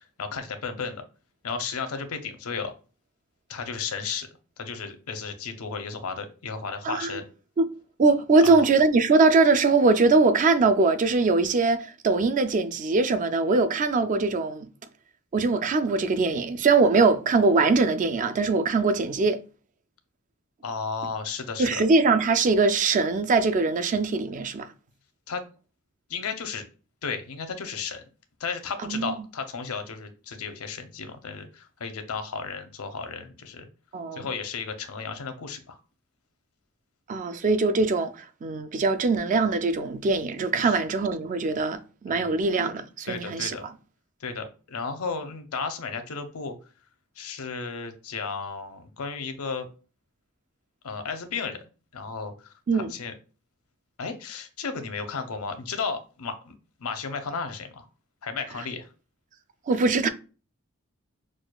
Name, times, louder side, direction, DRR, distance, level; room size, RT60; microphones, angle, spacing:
voice 1, 0.2-1.0 1.4-2.7 3.5-4.3 4.6-7.2 8.4-8.7 20.6-21.8 25.3-25.4 26.1-26.7 27.0-28.0 28.4-33.7 34.1-35.8 40.6-40.8 42.1-42.4 43.1-43.7 44.2-46.5 47.2-49.7 50.8-51.6 51.9-52.3 52.7-53.1 54.0-57.8 58.2-58.9, left 5 dB, 85° left, 0.6 m, -34 dB
voice 2, 6.8-7.2 7.6-7.7 8.0-14.7 15.3-19.4 21.6-24.7 28.8-29.1 33.9-34.3 37.1-43.6 52.7-52.9 59.7-60.1, right 3 dB, 35° right, 0.3 m, -22 dB
6.1 x 2.3 x 2.3 m
head